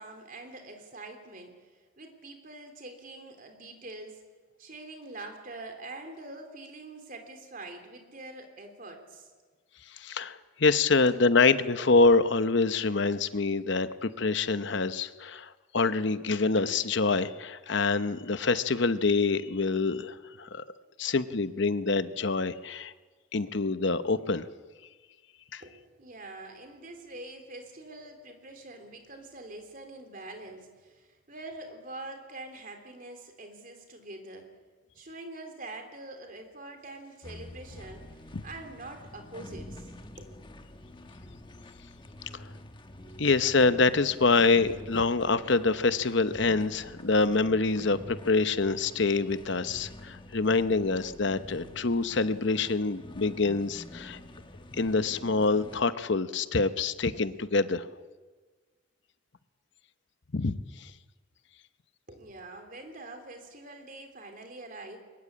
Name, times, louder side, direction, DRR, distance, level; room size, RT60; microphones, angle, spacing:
voice 1, 0.0-4.2 4.6-9.3 11.1-11.2 25.6-34.5 34.9-38.2 38.4-39.9 40.2-40.3 62.1-65.0, right 2 dB, 40° right, 5 dB, 3.3 m, -45 dB
voice 2, 9.9-20.6 21.0-22.9 23.3-24.5 25.5-25.6 38.3-38.4 43.2-54.2 54.8-57.9 60.3-60.9, left 3 dB, 60° left, 13 dB, 0.9 m, -26 dB
sound 1, 37.2-55.8, left 1 dB, 25° left, 1.2 m, -47 dB
22.5 x 21.0 x 8.7 m, 1.4 s
head